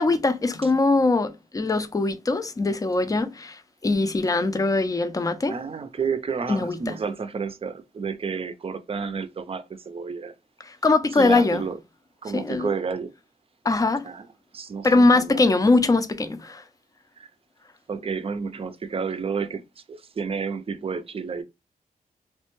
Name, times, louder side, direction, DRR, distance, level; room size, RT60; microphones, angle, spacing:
voice 1, 0.0-5.5 6.5-6.9 10.6-11.6 12.3-12.7 13.6-14.0 14.8-16.6, left 3 dB, 25° left, 0.5 m, -22 dB
voice 2, 5.5-10.3 11.2-11.8 12.2-13.1 14.0-14.3 14.5-15.4 17.2-17.3 17.9-21.4, right 5 dB, 40° right, 0.5 m, -31 dB
3.1 x 2.2 x 3.0 m
wide cardioid pair, 100°, 15 cm